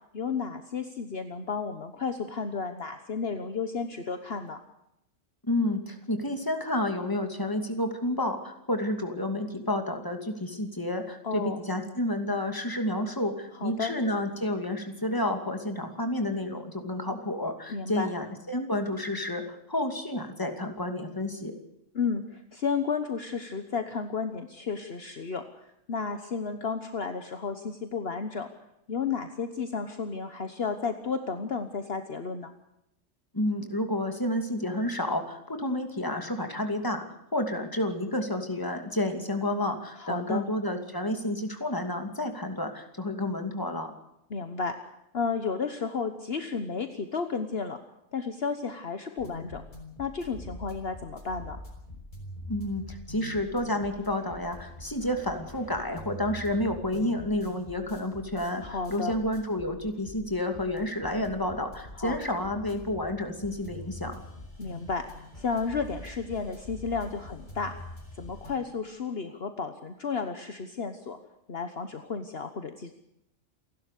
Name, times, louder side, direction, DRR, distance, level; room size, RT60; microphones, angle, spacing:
voice 1, 0.1-4.6 11.2-11.6 13.5-13.9 17.7-18.1 21.9-28.5 28.9-32.5 40.0-40.5 44.3-44.8 45.1-47.8 48.1-49.6 50.0-51.6 58.6-59.1 61.9-62.2 64.6-65.1 65.4-67.7 68.1-71.2 71.5-72.9, left 5 dB, 50° left, 8 dB, 1.4 m, -32 dB
voice 2, 5.4-21.6 33.3-37.0 37.3-43.9 52.5-64.2, left 1 dB, 15° left, 5 dB, 2.6 m, -30 dB
sound 1, 49.2-68.5, left 1 dB, 35° left, 6.0 m, -45 dB
28.5 x 12.0 x 8.4 m, 0.82 s
omnidirectional pair, 1.3 m